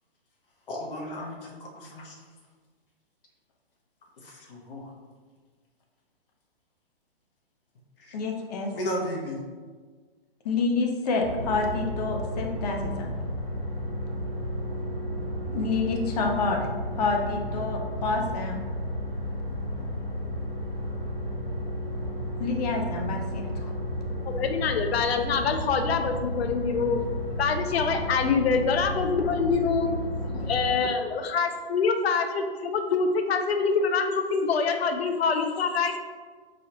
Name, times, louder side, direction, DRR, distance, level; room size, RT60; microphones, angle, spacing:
voice 1, 0.7-2.2 4.2-4.9 8.0-8.2 8.7-9.4, equal, 60° left, 0 dB, 0.9 m, -35 dB
voice 2, 8.1-8.7 10.4-13.1 15.5-16.7 17.0-18.6 22.4-23.7, left 4 dB, 40° left, 1 dB, 0.6 m, -28 dB
sound 1, 11.2-30.8, equal, 5° left, 0.7 m, -32 dB
voice 3, 24.3-27.0 27.4-36.0, left 5 dB, 85° left, 6 dB, 0.5 m, -25 dB
4.9 x 2.4 x 2.9 m, 1.5 s
hypercardioid pair, 150°, 30 cm